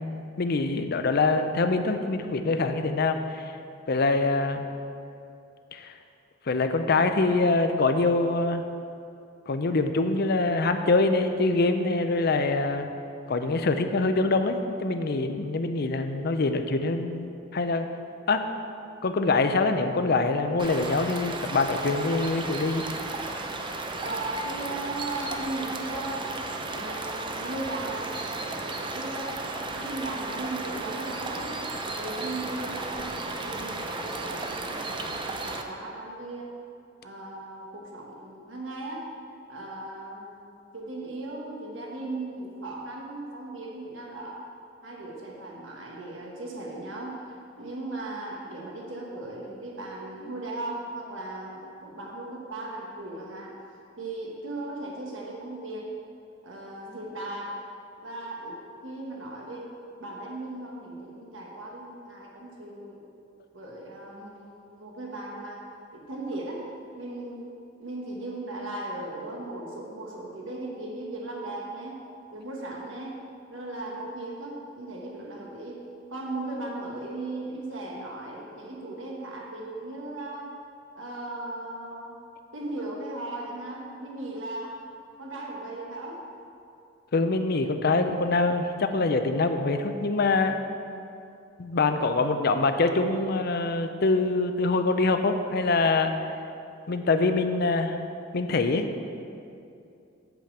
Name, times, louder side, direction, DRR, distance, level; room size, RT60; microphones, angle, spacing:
voice 1, 0.0-3.5 3.9-4.7 5.7-5.9 6.5-8.6 9.5-12.9 13.3-17.9 18.3-18.5 19.0-22.8 87.1-90.6 91.6-96.1 96.9-98.0 98.3-98.9, left 3 dB, 55° left, 7 dB, 0.6 m, -24 dB
sound 1, 20.6-35.6, right 2 dB, 25° right, 0.6 m, -34 dB
voice 2, 24.0-26.3 26.7-29.4 29.7-31.5 31.8-36.5 37.0-39.1 39.5-44.4 44.8-53.5 54.0-55.9 56.4-57.6 58.0-59.7 60.0-63.0 63.5-66.7 66.9-67.4 67.8-72.0 72.3-73.2 73.5-75.8 76.1-80.5 81.0-82.2 82.5-84.8 85.2-86.2 87.4-87.5, right 2 dB, 80° right, -1 dB, 1.2 m, -37 dB
8.2 x 5.1 x 7.4 m, 2.6 s
head